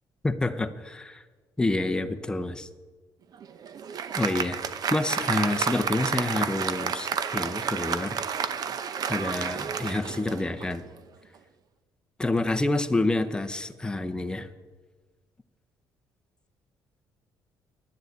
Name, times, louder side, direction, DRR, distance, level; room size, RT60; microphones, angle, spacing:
voice 1, 0.2-1.2 1.6-2.7 4.2-4.6 4.9-8.2 9.1-10.8 12.2-14.5, left 2 dB, 10° left, 7 dB, 0.8 m, -28 dB
Applause, 3.3-10.9, right 7 dB, 50° right, 0.7 m, -31 dB
10.5 x 9.4 x 8.0 m, 1.4 s
cardioid pair, 120°, 8 cm